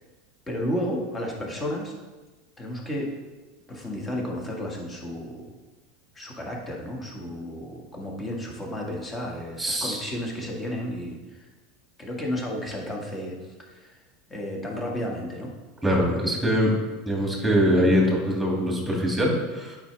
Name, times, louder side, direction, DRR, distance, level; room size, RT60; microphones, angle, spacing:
voice 1, 0.5-1.9 2.6-3.1 3.7-5.6 6.2-11.5 12.0-13.9 14.3-15.5, equal, 20° left, -1 dB, 1.8 m, -32 dB
voice 2, 9.6-10.1 15.8-16.7 17.1-19.8, equal, 5° right, -2 dB, 2.5 m, -23 dB
8.5 x 5.4 x 3.5 m, 1.2 s
hypercardioid pair, 100°, 0 cm